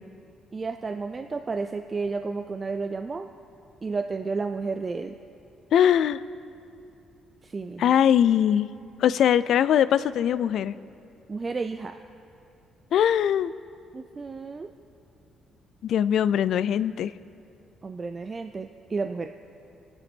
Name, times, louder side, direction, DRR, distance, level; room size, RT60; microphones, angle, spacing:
voice 1, 0.5-3.3 3.8-5.2 7.4-7.9 11.3-12.0 13.9-14.7 17.8-19.3, right 4 dB, 20° right, 7 dB, 0.4 m, -32 dB
voice 2, 5.7-6.2 7.8-8.7 9.0-10.7 12.9-13.5 15.8-17.1, left 9 dB, 55° left, 16 dB, 0.4 m, -21 dB
28.0 x 9.7 x 4.5 m, 2.6 s
cardioid pair, 175°, 0 cm